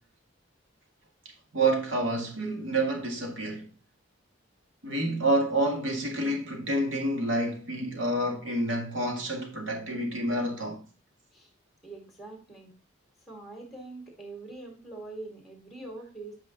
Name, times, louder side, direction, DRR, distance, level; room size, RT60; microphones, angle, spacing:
voice 1, 1.5-3.7 4.8-10.8, right 1 dB, 75° right, 1.9 m, -28 dB
voice 2, 11.8-12.7 13.3-16.4, right 2 dB, ahead, 2.0 m, -43 dB
8.1 x 4.9 x 3.7 m
head